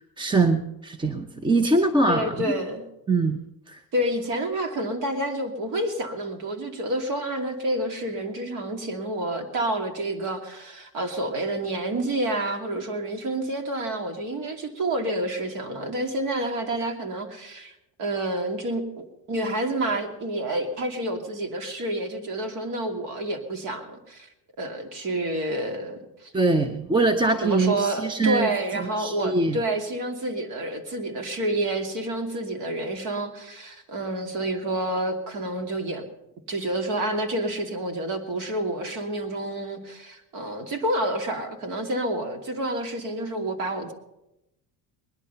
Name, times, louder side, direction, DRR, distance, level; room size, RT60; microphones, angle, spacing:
voice 1, 0.0-2.4 3.1-3.4 3.7-3.8 26.3-29.6, right 3 dB, 15° right, 8 dB, 0.7 m, -23 dB
voice 2, 2.1-2.8 3.9-17.7 18.0-24.3 24.6-26.3 27.4-36.1 36.5-43.9, right 1 dB, 55° right, 4 dB, 2.7 m, -29 dB
20.5 x 11.5 x 5.6 m, 0.91 s
cardioid pair, 130°, 38 cm